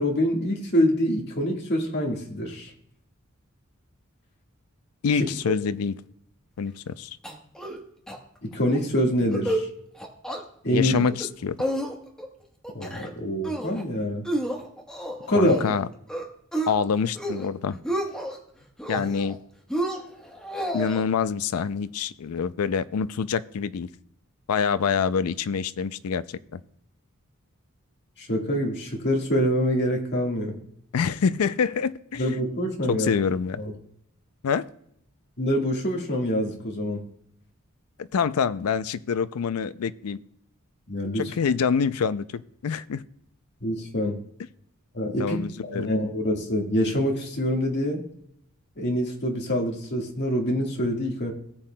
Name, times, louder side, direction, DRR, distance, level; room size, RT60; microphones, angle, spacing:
voice 1, 0.0-2.7 5.1-5.5 8.4-9.7 10.6-10.9 12.7-14.3 15.3-15.6 28.2-30.6 32.2-33.1 33.6-33.7 35.4-37.0 40.9-41.3 43.6-44.2 44.9-48.0 48.8-51.3, equal, 50° left, 0 dB, 1.7 m, -25 dB
voice 2, 5.0-5.9 6.6-7.2 10.7-11.6 15.4-15.9 16.7-17.8 18.9-19.4 20.7-23.9 24.5-26.6 30.9-32.4 32.9-33.6 34.4-34.6 38.1-40.2 41.2-43.0 45.2-45.9, left 6 dB, 85° left, 14 dB, 0.4 m, -26 dB
sound 1, 7.2-7.8 8.1-8.2 8.5-8.8 9.2-9.7 10.0-10.4 10.8-11.3 11.6-12.3 12.6-13.1 13.4-13.8 14.3-15.8 16.1-16.7 17.1-17.5 17.7-18.4 18.8-19.4 19.7-21.0, right 1 dB, 5° left, 1.1 m, -30 dB
18.5 x 7.4 x 2.2 m, 0.72 s
head